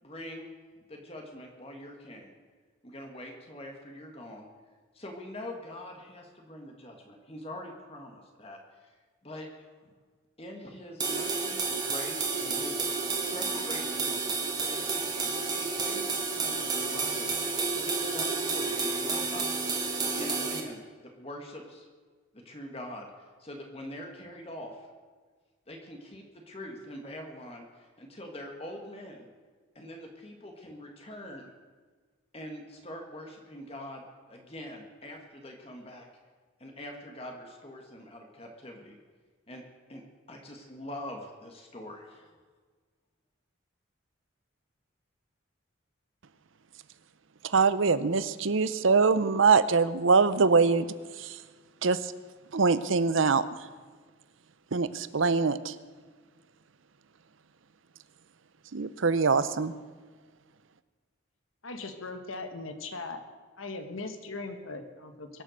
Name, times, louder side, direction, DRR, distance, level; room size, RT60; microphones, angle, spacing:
voice 1, 0.0-0.5 0.9-2.3 2.8-4.5 4.9-8.9 9.2-9.9 10.4-14.2 14.6-17.3 17.7-19.5 20.2-21.9 22.3-24.8 25.7-29.3 29.7-31.5 32.3-36.1 36.6-39.0 39.5-39.6 39.9-42.4, left 1 dB, 30° left, 2 dB, 1.6 m, -44 dB
sound 1, 11.0-20.6, right 4 dB, 20° right, 1.6 m, -31 dB
voice 2, 47.4-50.9 51.2-51.4 51.8-52.1 52.5-53.7 54.7-55.8 58.7-59.7, right 4 dB, 75° right, 14 dB, 0.7 m, -24 dB
voice 3, 61.6-63.2 63.6-65.4, left 3 dB, 85° left, 7 dB, 1.4 m, -39 dB
23.0 x 7.8 x 6.4 m, 1.5 s
head